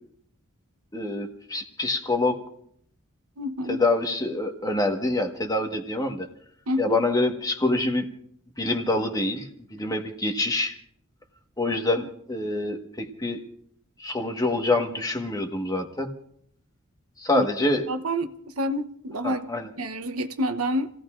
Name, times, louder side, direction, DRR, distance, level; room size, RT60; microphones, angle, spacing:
voice 1, 0.9-2.4 3.7-6.3 6.8-8.1 8.6-10.7 11.6-13.4 14.0-16.1 17.2-17.9 19.2-19.7, left 2 dB, 15° left, 1.5 m, -26 dB
voice 2, 3.4-3.8 6.7-7.0 17.3-17.5 17.9-19.5 19.8-20.9, equal, 80° right, 1.0 m, -28 dB
29.5 x 17.0 x 2.6 m
head